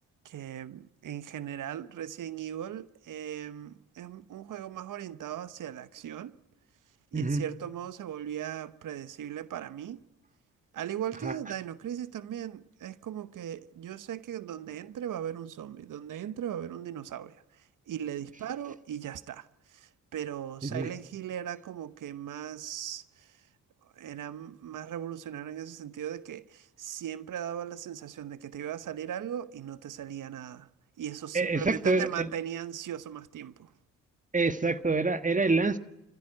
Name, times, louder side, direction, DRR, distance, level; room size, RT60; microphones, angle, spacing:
voice 1, 0.2-6.3 7.1-10.0 10.7-17.4 17.9-23.3 24.0-30.7 31.0-33.7, right 10 dB, 60° right, 1.0 m, -38 dB
voice 2, 7.1-7.4 11.2-11.3 20.6-20.9 31.3-32.3 34.3-35.8, right 3 dB, 20° right, 1.6 m, -26 dB
28.0 x 15.0 x 7.9 m
hypercardioid pair, 50°, 35 cm